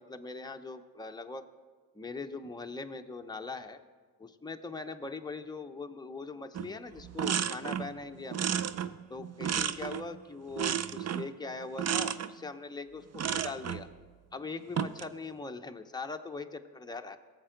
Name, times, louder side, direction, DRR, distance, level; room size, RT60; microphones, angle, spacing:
voice 1, 0.0-1.5 1.9-3.8 4.2-8.5 9.1-13.9 14.3-17.2, left 3 dB, 10° left, 5 dB, 0.7 m, -41 dB
sound 1, 6.5-6.7 7.0-7.9 8.3-10.1 10.6-11.3 11.8-12.3 13.1-13.8 14.6-15.1, right 9 dB, 40° right, 0.5 m, -32 dB
17.5 x 7.4 x 3.8 m, 1.5 s
supercardioid pair, 55°, 43 cm